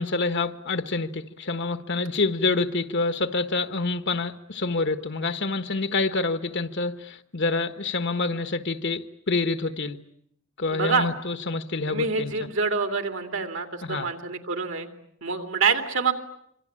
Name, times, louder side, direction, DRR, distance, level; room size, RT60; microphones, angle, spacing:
voice 1, 0.0-10.0 10.6-12.3 13.8-14.1, left 3 dB, 60° left, 1.4 m, -27 dB
voice 2, 10.7-11.1 11.9-14.9 15.2-16.1, right 5 dB, 65° right, 2.9 m, -26 dB
26.0 x 25.5 x 8.9 m
head